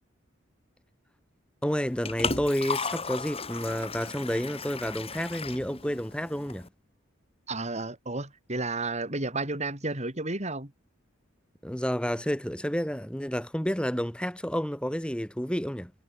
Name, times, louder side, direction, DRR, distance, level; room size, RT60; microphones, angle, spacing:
voice 1, 1.6-6.7 11.6-15.9, equal, 5° left, 2.8 m, -30 dB
Liquid, 1.7-6.7, left 4 dB, 30° left, 4.6 m, -35 dB
voice 2, 7.5-10.7, right 2 dB, 35° right, 5.1 m, -32 dB
head